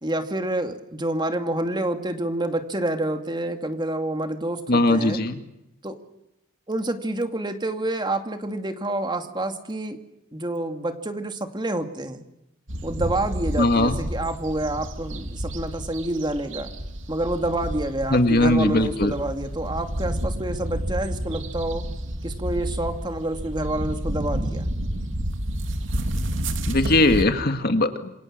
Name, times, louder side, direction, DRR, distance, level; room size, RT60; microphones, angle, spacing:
voice 1, 0.0-5.2 5.8-6.0 6.7-10.0 10.3-12.3 12.8-16.7 17.1-21.9 22.2-24.7, right 1 dB, 20° right, 6 dB, 2.4 m, -28 dB
voice 2, 4.7-5.4 13.6-14.0 18.1-19.2 26.7-28.1, left 2 dB, 50° left, 7 dB, 2.2 m, -20 dB
sound 1, 12.7-27.2, right 1 dB, 65° right, 2.9 m, -30 dB
28.5 x 25.5 x 7.5 m, 0.88 s
head